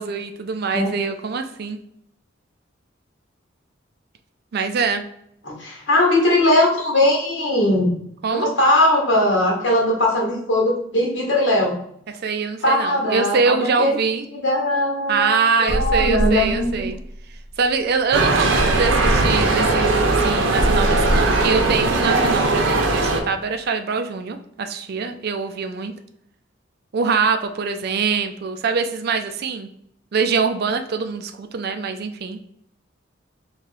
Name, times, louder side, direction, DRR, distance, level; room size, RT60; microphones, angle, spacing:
voice 1, 0.0-1.8 4.5-5.0 8.2-8.5 12.1-14.2 15.1-17.0 17.6-25.9 26.9-29.7 30.1-32.4, right 5 dB, 55° right, 8 dB, 0.4 m, -24 dB
voice 2, 5.4-8.0 8.3-11.8 12.6-14.0 14.4-16.9, left 1 dB, 65° left, -2 dB, 1.6 m, -19 dB
sound 1, 15.7-18.0 18.5-23.2, right 1 dB, 30° right, 0.9 m, -26 dB
sound 2, 18.1-23.2, right 3 dB, 85° right, 0.7 m, -19 dB
3.1 x 2.9 x 4.5 m, 0.73 s
head